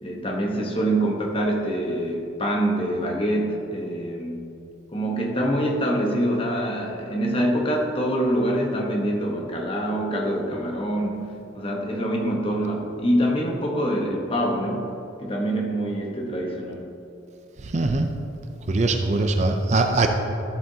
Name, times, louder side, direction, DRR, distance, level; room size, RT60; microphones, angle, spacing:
voice 1, 0.0-4.4 4.9-11.3 11.5-14.9 15.2-16.9, right 1 dB, 30° left, 0 dB, 1.0 m, -25 dB
voice 2, 17.7-18.1 18.7-20.1, right 2 dB, 35° right, 5 dB, 0.5 m, -21 dB
13.0 x 7.6 x 2.8 m, 2.7 s
head